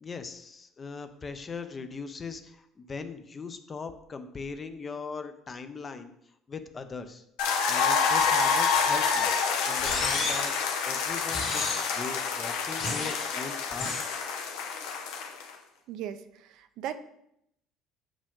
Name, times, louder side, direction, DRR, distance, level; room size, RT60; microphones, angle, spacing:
voice 1, 0.0-6.1 6.5-7.2 7.7-9.3 9.6-10.5 10.8-13.9, left 4 dB, 25° left, 9 dB, 0.5 m, -39 dB
sound 1, 7.4-15.5, left 5 dB, 85° left, 0.9 m, -28 dB
sound 2, 9.8-10.6 11.3-12.0 12.8-13.3 13.8-14.2, left 3 dB, 50° left, 2.3 m, -32 dB
voice 2, 15.9-16.9, right 10 dB, 65° right, 10 dB, 0.5 m, -37 dB
7.2 x 5.0 x 3.7 m, 0.77 s
cardioid pair, 140°, 0 cm